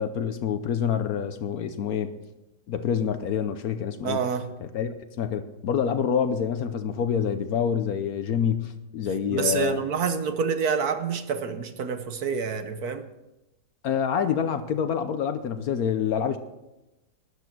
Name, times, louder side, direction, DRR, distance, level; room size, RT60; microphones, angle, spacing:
voice 1, 0.0-2.1 2.7-4.2 4.6-9.8 13.8-16.4, left 7 dB, 65° left, 10 dB, 1.1 m, -27 dB
voice 2, 4.0-4.5 9.3-13.1, right 6 dB, 65° right, 9 dB, 1.3 m, -27 dB
13.0 x 10.0 x 6.0 m, 0.97 s
omnidirectional pair, 1.9 m